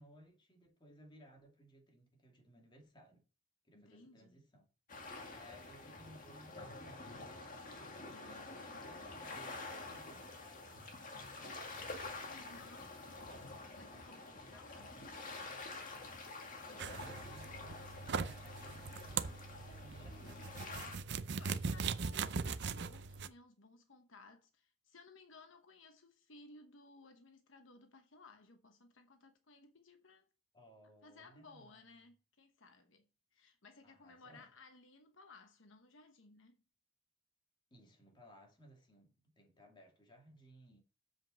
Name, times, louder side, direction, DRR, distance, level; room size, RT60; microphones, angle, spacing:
voice 1, 0.0-3.2 3.6-4.7 5.3-7.3 8.2-8.5 8.8-10.9 12.3-13.0 13.8-15.1 16.9-22.3 30.5-31.9 33.8-34.5 37.7-40.8, equal, 25° left, 2.4 m, -61 dB
voice 2, 3.7-4.4 8.1-8.5 12.2-12.9 13.7-15.5 21.3-30.3 31.0-36.6, left 3 dB, 75° left, 1.1 m, -60 dB
sound 1, 4.9-21.0, left 3 dB, 45° left, 1.9 m, -48 dB
sound 2, 16.8-23.3, right 5 dB, 60° right, 0.6 m, -40 dB
7.6 x 5.2 x 6.9 m
head